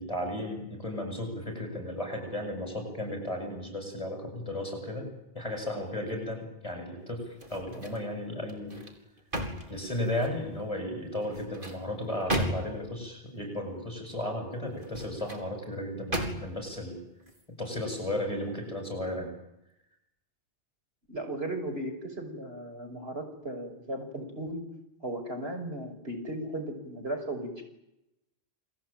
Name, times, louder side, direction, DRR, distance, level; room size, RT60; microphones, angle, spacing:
voice 1, 0.0-5.1 5.3-8.8 9.7-17.0 17.6-19.3, left 1 dB, 35° left, 4 dB, 8.1 m, -34 dB
sound 1, 7.3-8.1 8.5-10.5 11.2-12.9 14.7-15.5 16.1-16.7 17.2-17.4, right 1 dB, 55° right, 4.6 m, -35 dB
voice 2, 21.1-24.6 25.0-27.6, right 1 dB, 75° right, 5 dB, 6.5 m, -36 dB
29.0 x 21.5 x 9.2 m, 0.86 s
omnidirectional pair, 1.0 m